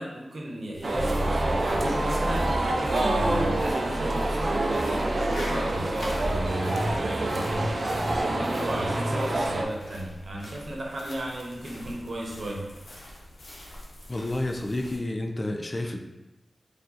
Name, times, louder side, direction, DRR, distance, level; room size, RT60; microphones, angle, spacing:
voice 1, 0.0-7.7 8.2-12.7, right 1 dB, 70° right, -2 dB, 0.9 m, -34 dB
sound 1, 0.7-15.0, left 1 dB, 75° left, 0.9 m, -44 dB
sound 2, 0.8-9.6, right 2 dB, 50° right, 0.5 m, -27 dB
sound 3, 0.9-6.5, equal, 25° right, 1.3 m, -33 dB
voice 2, 14.1-16.0, left 1 dB, 30° left, 4 dB, 0.4 m, -30 dB
4.5 x 2.5 x 3.9 m, 1.0 s
wide cardioid pair, 80°, 0 cm